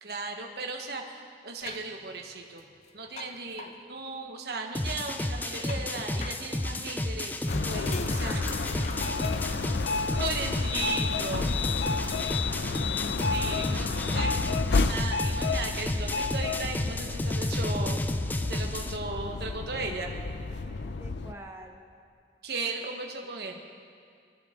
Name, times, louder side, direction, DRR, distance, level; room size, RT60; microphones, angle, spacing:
voice 1, 0.0-2.6 2.9-8.4 9.8-11.4 12.6-12.9 13.3-14.3 14.8-18.0 18.5-20.1 22.4-23.6, right 3 dB, 65° right, 2 dB, 1.3 m, -36 dB
sound 1, 1.6-3.8 4.6-4.7 5.0-6.4 7.0-10.1, left 3 dB, 40° left, 0.7 m, -41 dB
sound 2, 4.7-19.0, left 1 dB, 10° left, 0.3 m, -32 dB
sound 3, 7.5-21.3, left 4 dB, 80° left, 0.5 m, -31 dB
voice 2, 11.5-12.7 21.0-21.8, right 1 dB, 15° right, 1 dB, 1.2 m, -50 dB
23.5 x 11.5 x 3.8 m, 2.3 s
head